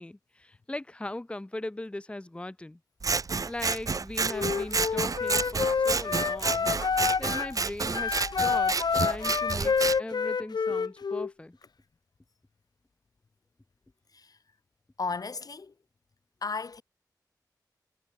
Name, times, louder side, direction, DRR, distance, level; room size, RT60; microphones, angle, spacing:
voice 1, 0.0-2.8 3.5-6.7 7.2-11.6, left 1 dB, 15° left, 0.8 m, -39 dB
Scissors, 3.0-10.0, right 4 dB, 55° right, 0.9 m, -30 dB
Wind instrument woodwind instrument, 4.3-7.5 7.9-11.3, left 5 dB, 80° left, 1.1 m, -28 dB
voice 2, 15.0-15.7 16.4-16.8, left 4 dB, 60° left, 1.7 m, -34 dB
wide cardioid pair, 100°, 7 cm